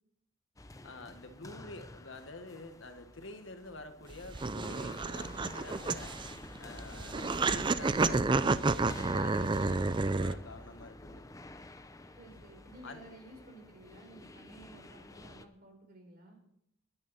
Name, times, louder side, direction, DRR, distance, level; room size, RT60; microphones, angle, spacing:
sound 1, 0.6-15.5, left 2 dB, 15° left, 0.7 m, -50 dB
voice 1, 0.8-6.1 6.6-11.3 12.8-13.0, left 2 dB, 75° left, 7 dB, 1.5 m, -48 dB
sound 2, 4.1-10.3, right 3 dB, 25° right, 0.4 m, -30 dB
voice 2, 12.2-16.4, right 1 dB, 50° right, 3 dB, 4.4 m, -54 dB
21.5 x 9.7 x 4.2 m, 0.73 s
head